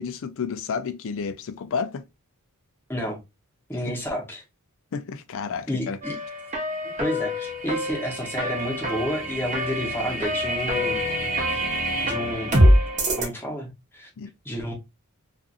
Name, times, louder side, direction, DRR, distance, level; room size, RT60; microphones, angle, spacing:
voice 1, 0.0-2.0 3.9-4.0 4.9-6.0 14.2-14.3, left 5 dB, 60° left, 0.4 m, -31 dB
voice 2, 3.7-4.4 5.7-6.2 7.0-11.1 11.5-11.6 12.0-12.6 13.2-14.1 14.4-14.7, equal, 10° left, 0.8 m, -30 dB
sound 1, 6.0-13.2, equal, 35° right, 0.8 m, -24 dB
2.5 x 2.5 x 2.4 m
head